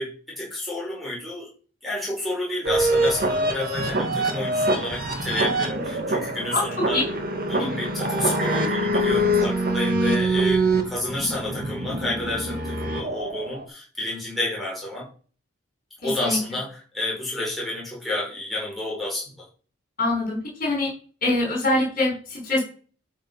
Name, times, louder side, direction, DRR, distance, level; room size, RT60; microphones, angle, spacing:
voice 1, 0.0-1.5 1.8-7.1 7.5-15.1 16.0-19.4, left 1 dB, ahead, -6 dB, 5.1 m, -30 dB
sound 1, 2.6-13.6, right 1 dB, 45° right, 1.9 m, -24 dB
voice 2, 20.0-20.9 21.2-22.6, left 2 dB, 40° left, -1 dB, 5.2 m, -23 dB
12.0 x 5.2 x 5.6 m, 0.41 s
head